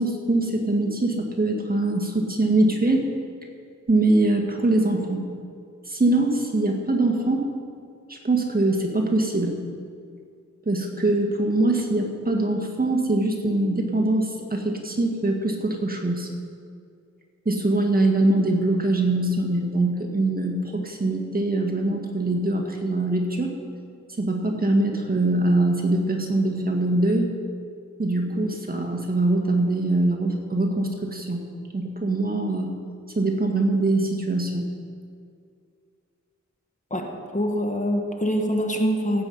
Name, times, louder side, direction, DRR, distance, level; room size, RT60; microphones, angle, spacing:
voice 1, 0.0-3.1 3.9-5.3 5.9-7.5 8.1-9.6 10.7-16.3 17.5-23.5 24.2-27.3 28.0-31.4 31.7-32.8 33.2-34.7, right 2 dB, 30° right, 1 dB, 1.7 m, -23 dB
voice 2, 37.3-39.3, equal, 25° left, 2 dB, 1.5 m, -24 dB
16.5 x 8.2 x 5.5 m, 2.3 s
wide cardioid pair, 80°, 31 cm